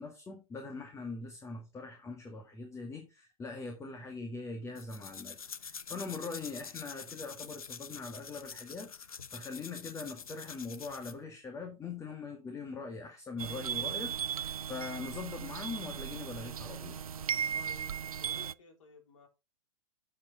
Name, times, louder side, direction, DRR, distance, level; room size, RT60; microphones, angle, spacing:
voice 1, 0.0-8.9 9.3-17.0, left 4 dB, 15° left, 1.8 m, -42 dB
sound 1, 4.7-11.2, left 6 dB, 85° left, 0.8 m, -46 dB
sound 2, 13.4-18.5, right 8 dB, 85° right, 0.4 m, -37 dB
voice 2, 17.5-19.3, left 6 dB, 65° left, 3.6 m, -56 dB
8.5 x 7.8 x 3.8 m
figure-of-eight pair, 110°, 18 cm